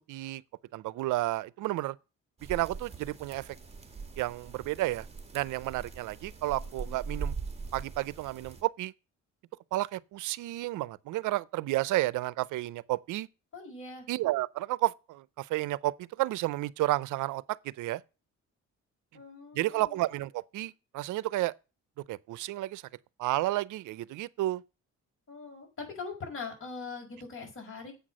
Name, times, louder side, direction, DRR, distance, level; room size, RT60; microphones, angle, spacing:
voice 1, 0.1-0.4 0.7-2.0 2.5-3.6 4.2-5.1 5.3-7.3 7.7-8.9 9.7-13.3 14.1-18.0 19.5-21.5 22.1-22.8 23.2-24.6, right 17 dB, 80° right, 0.5 m, -31 dB
sound 1, 2.4-8.6, right 5 dB, 20° right, 2.1 m, -41 dB
voice 2, 6.5-7.0 13.5-14.0 19.1-20.0 25.3-27.9, left 4 dB, 45° left, 5.3 m, -42 dB
8.1 x 6.0 x 6.2 m
cardioid pair, 90°, 30 cm